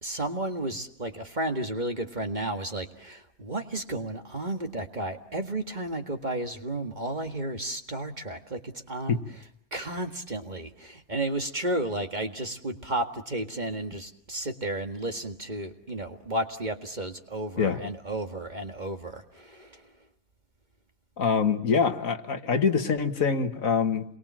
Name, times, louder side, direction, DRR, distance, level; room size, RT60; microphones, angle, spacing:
voice 1, 0.0-9.4 9.7-19.7, right 1 dB, 30° right, 5 dB, 1.9 m, -33 dB
voice 2, 21.2-24.0, left 5 dB, 65° left, 8 dB, 1.9 m, -24 dB
29.0 x 22.5 x 7.4 m, 0.71 s
omnidirectional pair, 1.5 m